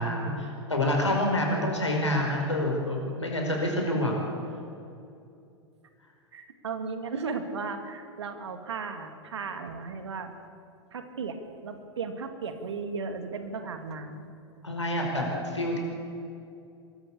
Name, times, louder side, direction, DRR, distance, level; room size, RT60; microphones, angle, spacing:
voice 1, 0.0-4.1 14.6-15.8, left 1 dB, 90° left, 0 dB, 5.0 m, -27 dB
voice 2, 6.3-10.3 10.9-14.2, right 4 dB, 75° right, 7 dB, 2.2 m, -35 dB
23.0 x 14.5 x 8.5 m, 2.5 s
figure-of-eight pair, 95°, 15 cm